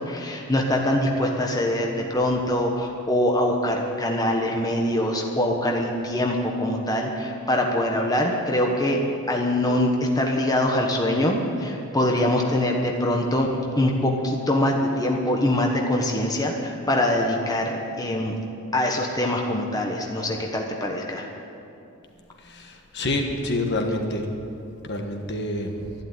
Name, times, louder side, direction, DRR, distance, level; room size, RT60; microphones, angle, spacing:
voice 1, 0.0-9.0 9.3-13.5 13.8-18.3 18.7-21.3, left 1 dB, 15° left, 0 dB, 1.2 m, -23 dB
voice 2, 22.4-24.3 24.8-25.9, left 1 dB, 50° left, 3 dB, 1.4 m, -27 dB
11.5 x 11.5 x 9.4 m, 2.6 s
head